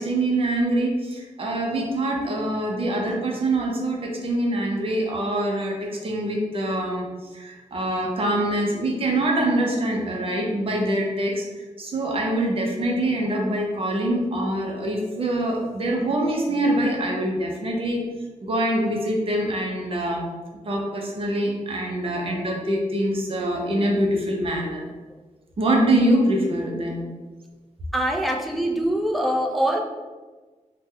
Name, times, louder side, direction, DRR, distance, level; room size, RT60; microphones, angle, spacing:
voice 1, 0.0-5.7 6.0-7.0 7.3-11.4 11.8-18.0 18.4-20.2 20.6-24.8 25.6-27.0, right 1 dB, 45° right, 0 dB, 0.6 m, -24 dB
voice 2, 27.9-29.8, right 1 dB, ahead, -1 dB, 0.3 m, -23 dB
3.4 x 2.1 x 3.2 m, 1.3 s
wide cardioid pair, 150°, 13 cm